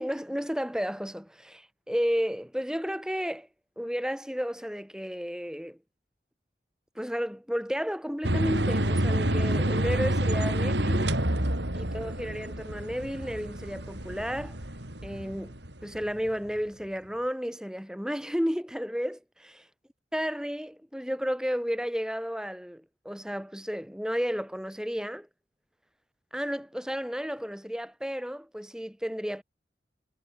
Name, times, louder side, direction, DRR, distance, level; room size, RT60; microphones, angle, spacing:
voice 1, 0.0-3.5 3.8-5.8 7.0-11.1 11.7-14.6 15.0-19.7 20.1-25.3 26.3-29.4, equal, 5° right, 3.8 m, -32 dB
sound 1, 8.2-16.3, right 1 dB, 90° right, 5.4 m, -28 dB
head